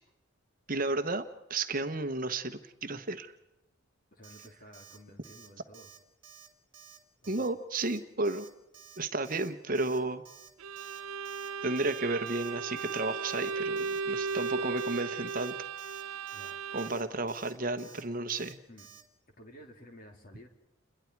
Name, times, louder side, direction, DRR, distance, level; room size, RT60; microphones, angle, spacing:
voice 1, 0.7-1.2 1.5-3.3 7.3-8.4 9.0-10.2 11.6-15.6 16.7-18.6, right 2 dB, 40° right, 9 dB, 1.1 m, -32 dB
voice 2, 4.1-5.9 7.2-7.4 16.3-16.6 18.7-18.9 19.4-20.5, equal, 40° left, 3 dB, 3.1 m, -53 dB
Alarm, 4.2-4.5 4.7-5.0 5.2-5.5 5.7-6.0 6.2-6.5 6.7-7.0 7.2-7.5 7.7-8.0 8.2-8.5 8.7-9.0 9.2-9.5 9.7-10.0 10.2-10.5 10.7-11.0 11.2-11.5 11.7-12.0 12.3-12.5 12.8-13.0 13.3-13.5 13.8-14.0 14.3-14.5 14.8-15.0 15.3-15.5 15.8-16.0 16.3-16.5 16.8-17.0 17.3-17.5 17.8-18.0 18.3-18.5 18.8-19.0, right 7 dB, 25° right, 3.4 m, -53 dB
Bowed string instrument, 10.6-17.2, right 5 dB, 75° right, 0.7 m, -36 dB
29.5 x 21.5 x 4.7 m, 0.89 s
head